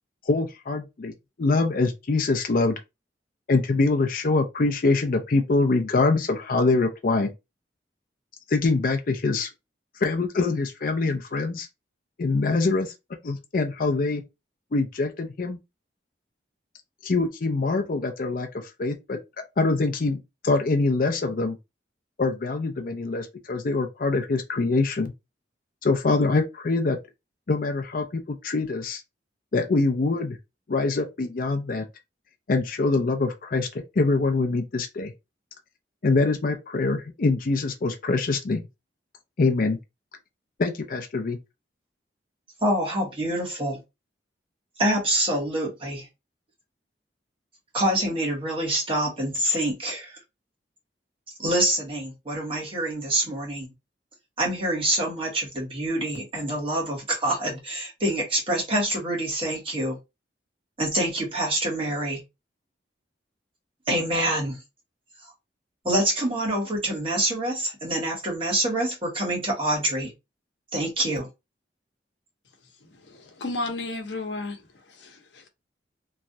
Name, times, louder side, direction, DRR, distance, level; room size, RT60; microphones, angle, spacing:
voice 1, 0.3-1.1 1.4-2.8 3.5-7.3 8.5-9.5 10.0-11.7 12.2-12.9 13.2-14.2 14.7-15.6 17.0-19.2 19.6-21.6 22.2-25.1 25.8-27.0 27.5-29.0 29.5-30.4 30.7-31.9 32.5-35.1 36.0-38.7 39.4-39.8 40.6-41.4, left 3 dB, 50° left, 0.5 m, -24 dB
voice 2, 42.6-43.8 44.8-46.1 47.7-50.2 51.4-53.7 54.4-60.0 60.8-62.2 63.9-64.6 65.8-70.1 70.7-71.3, right 1 dB, 30° right, 1.3 m, -26 dB
voice 3, 72.9-74.6 74.9-75.5, left 2 dB, 90° left, 0.8 m, -33 dB
3.1 x 2.4 x 2.6 m
head